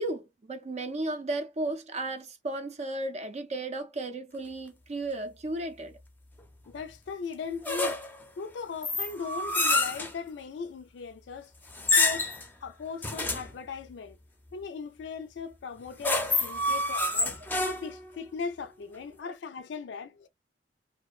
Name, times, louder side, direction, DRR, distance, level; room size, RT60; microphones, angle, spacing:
voice 1, 0.0-5.9 16.7-16.8 17.2-17.4 19.2-19.4, right 2 dB, 40° right, 0.5 m, -34 dB
voice 2, 6.7-8.0 8.4-11.5 12.0-12.3 12.6-14.2 14.5-17.4 17.6-20.3, left 5 dB, 90° left, 0.4 m, -38 dB
sound 1, 7.6-8.2 8.8-10.1 11.7-12.5 13.0-13.5 15.8-18.1, left 2 dB, 10° left, 0.5 m, -27 dB
2.6 x 2.1 x 2.4 m
head